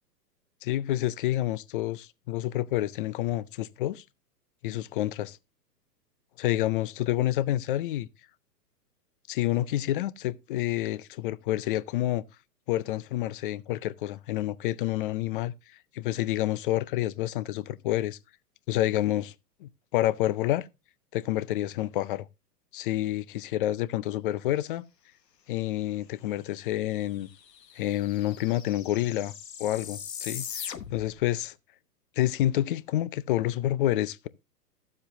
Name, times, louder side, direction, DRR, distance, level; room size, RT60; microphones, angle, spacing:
voice 1, 0.6-4.0 4.6-5.4 6.4-8.1 9.3-12.2 12.7-15.5 15.9-18.2 18.7-19.3 19.6-20.7 21.1-22.3 22.7-24.8 25.5-27.3 27.8-29.3 29.6-30.5 30.9-31.5 32.2-34.3, left 14 dB, 35° left, 0.5 m, -28 dB
sound 1, 26.7-26.8 27.0-31.2, left 8 dB, 80° left, 1.2 m, -41 dB
11.5 x 7.4 x 2.8 m
hypercardioid pair, 115°, 49 cm